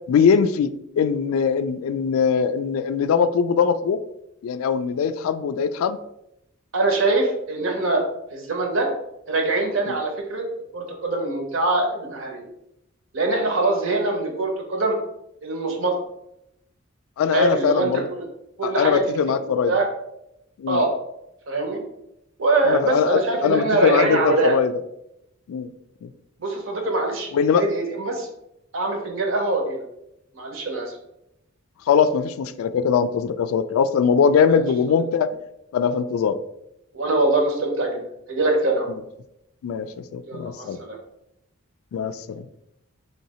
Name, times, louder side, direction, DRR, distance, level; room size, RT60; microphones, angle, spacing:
voice 1, 0.1-4.0 4.4-6.0 9.9-10.0 17.2-18.0 18.6-19.7 20.6-20.8 22.7-24.7 25.5-25.7 26.0-26.1 27.3-27.7 31.9-35.3 35.7-36.4 39.6-39.9 40.1-40.8 41.9-42.5, left 6 dB, 85° left, 13 dB, 0.3 m, -21 dB
voice 2, 6.7-8.0 8.3-8.9 9.3-10.4 10.7-12.4 13.1-15.0 15.4-16.0 17.3-18.2 18.6-19.0 19.4-19.9 20.7-20.9 21.5-21.8 22.4-24.6 26.4-28.3 28.7-29.8 30.3-31.0 34.5-34.6 36.9-38.0 38.3-38.9 40.3-41.0, right 2 dB, 70° right, 3 dB, 0.9 m, -23 dB
3.3 x 2.8 x 4.1 m, 0.83 s
head